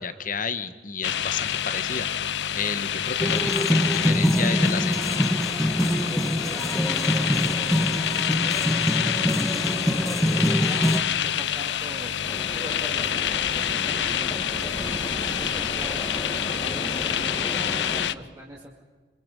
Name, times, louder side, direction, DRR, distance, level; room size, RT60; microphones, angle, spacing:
voice 1, 0.0-2.1 2.5-5.3, left 5 dB, 50° left, 11 dB, 1.4 m, -31 dB
sound 1, 1.0-18.1, left 9 dB, 75° left, 0.6 m, -27 dB
sound 2, 3.2-11.0, equal, ahead, 1.5 m, -24 dB
voice 2, 5.8-18.7, right 1 dB, 20° right, -4 dB, 2.6 m, -43 dB
sound 3, 12.2-18.1, left 1 dB, 25° left, 2.0 m, -34 dB
28.0 x 25.5 x 5.4 m, 1.4 s
head